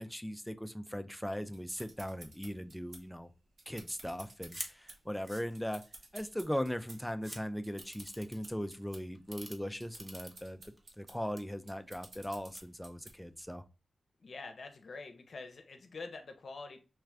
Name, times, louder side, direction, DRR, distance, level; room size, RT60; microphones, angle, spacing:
voice 1, 0.0-3.3 3.7-5.8 6.1-13.6, equal, 5° left, 0.3 m, -39 dB
sound 1, 1.5-13.4, right 2 dB, 60° right, 0.9 m, -55 dB
Kodak Retina Objectiv Unfold Mechanisms Spooling Trigger, 4.5-4.7 5.1-6.0 6.6-6.7 6.9-7.4 7.8-8.5 9.1-9.5 10.0-10.8 11.1-11.4 12.0-12.6, right 1 dB, 20° right, 0.8 m, -45 dB
voice 2, 14.2-16.8, left 3 dB, 60° left, 0.6 m, -46 dB
3.3 x 2.4 x 3.2 m
wide cardioid pair, 115°, 0 cm